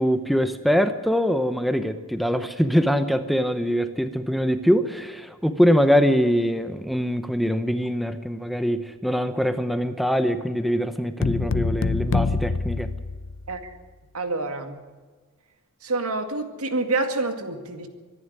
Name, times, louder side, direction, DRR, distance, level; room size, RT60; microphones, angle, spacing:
voice 1, 0.0-12.9, equal, ahead, 9 dB, 0.8 m, -23 dB
sound 1, 11.2-13.7, left 4 dB, 55° left, 0.6 m, -25 dB
voice 2, 14.1-14.9 15.8-17.9, right 2 dB, 80° right, 7 dB, 2.1 m, -27 dB
24.0 x 11.0 x 9.7 m, 1.4 s
head